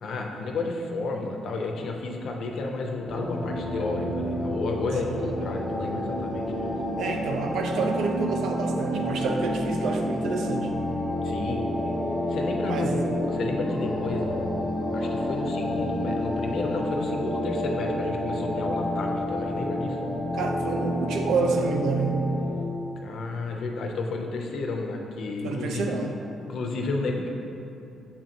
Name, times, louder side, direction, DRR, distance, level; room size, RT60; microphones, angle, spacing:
voice 1, 0.0-6.5 11.2-12.0 12.3-14.6 14.9-20.0 23.0-26.0 26.5-27.3, left 3 dB, 65° left, 2 dB, 0.5 m, -31 dB
sound 1, 3.1-22.7, equal, ahead, 0.7 m, -29 dB
voice 2, 7.0-10.7 11.4-11.6 12.6-13.2 20.3-22.2 25.4-26.1, right 4 dB, 80° right, 3 dB, 0.4 m, -28 dB
6.7 x 2.9 x 2.5 m, 2.8 s
cardioid pair, 90°, 0 cm